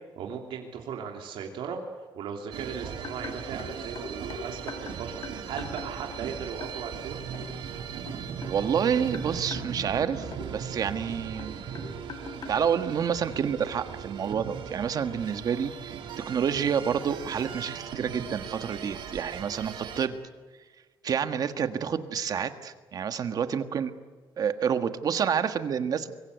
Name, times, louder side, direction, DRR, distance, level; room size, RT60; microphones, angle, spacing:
voice 1, 0.2-1.8 2.1-7.2, right 7 dB, 90° right, 1 dB, 3.0 m, -37 dB
sound 1, 2.5-20.1, right 7 dB, 70° right, 2.9 m, -38 dB
sound 2, 3.0-6.3 6.6-6.8 7.3-7.5 8.1-9.7 10.3-10.4 11.4-12.6, left 5 dB, 50° left, 3.4 m, -42 dB
voice 2, 8.4-11.6 12.5-16.0 16.2-20.2 21.0-23.9 24.4-26.1, right 7 dB, 45° right, 9 dB, 1.5 m, -28 dB
25.5 x 22.5 x 8.3 m, 1.4 s
cardioid pair, 160°, 9 cm